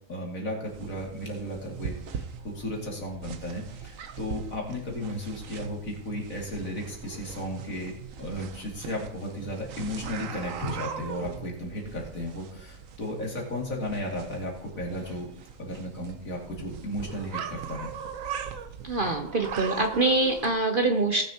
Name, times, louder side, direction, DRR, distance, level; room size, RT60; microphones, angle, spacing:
voice 1, 0.1-7.9 8.2-15.3 15.6-17.9, left 1 dB, 65° left, -1 dB, 2.8 m, -34 dB
sound 1, 0.7-20.5, right 7 dB, 70° right, 1.2 m, -40 dB
voice 2, 18.8-21.3, right 2 dB, 45° right, 5 dB, 0.8 m, -24 dB
19.0 x 6.9 x 2.8 m, 0.73 s
omnidirectional pair, 1.5 m